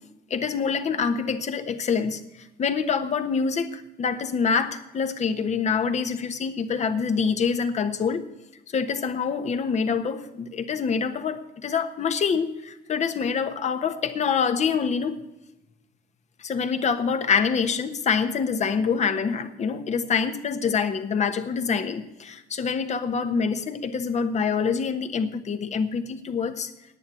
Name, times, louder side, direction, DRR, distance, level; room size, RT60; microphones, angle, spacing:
voice 1, 0.3-2.2 2.6-8.2 8.7-15.1 16.4-26.7, left 6 dB, 40° left, 9 dB, 1.4 m, -26 dB
10.5 x 9.0 x 9.4 m, 0.94 s
cardioid pair, 110°, 17 cm